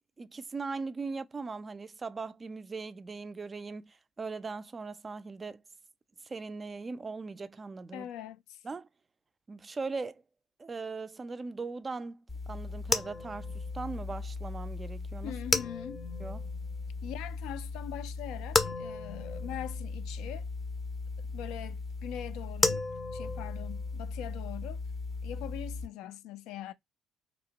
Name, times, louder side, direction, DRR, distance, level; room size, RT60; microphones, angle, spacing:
voice 1, 0.2-5.6 6.2-8.1 8.6-8.9 9.5-10.2 10.6-15.3 16.2-16.4, right 4 dB, 30° right, 0.3 m, -39 dB
voice 2, 7.9-8.6 15.2-16.1 17.0-20.5 21.2-22.8 23.1-24.8 25.2-26.7, left 11 dB, 80° left, 0.3 m, -42 dB
sound 1, 12.3-25.9, left 3 dB, 25° left, 0.5 m, -35 dB
2.8 x 2.1 x 2.7 m
supercardioid pair, 70°, 0 cm